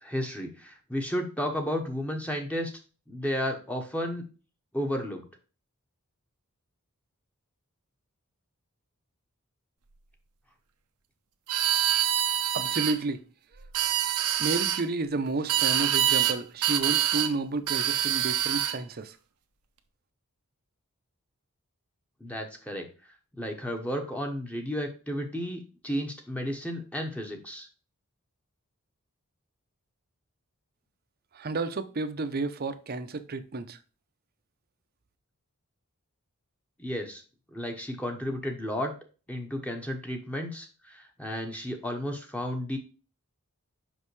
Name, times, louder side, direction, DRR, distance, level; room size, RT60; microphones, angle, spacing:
voice 1, 0.0-2.7 3.1-4.2 4.7-5.2 22.2-22.9 23.4-27.7 36.8-37.2 37.5-38.9 39.3-42.8, equal, 5° left, 0.9 m, -33 dB
sound 1, 11.5-13.0 13.6-14.8 15.5-16.4 16.6-17.3 17.7-18.8, right 11 dB, 85° right, 0.8 m, -25 dB
voice 2, 12.5-13.2 13.5-13.7 14.4-19.2 31.3-33.8, right 3 dB, 45° right, 0.6 m, -31 dB
5.6 x 5.4 x 3.1 m
head